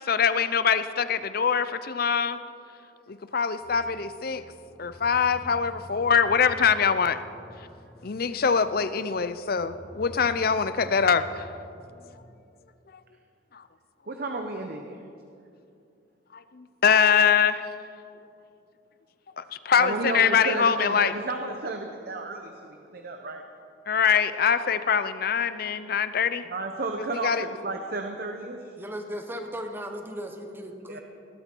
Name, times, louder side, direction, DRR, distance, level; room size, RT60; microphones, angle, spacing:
voice 1, 0.1-2.4 3.1-4.4 4.8-7.2 8.0-11.5 16.5-17.7 19.4-21.1 23.9-26.4 27.1-27.5, left 6 dB, 50° left, 13 dB, 0.6 m, -23 dB
sound 1, 3.6-12.1, equal, 5° left, 2.1 m, -48 dB
voice 2, 14.1-15.0 19.8-23.4 26.5-28.6 30.9-31.0, right 3 dB, 55° right, 4 dB, 0.9 m, -32 dB
voice 3, 28.8-31.0, equal, 10° right, 4 dB, 1.1 m, -36 dB
19.0 x 12.5 x 4.6 m, 2.6 s
head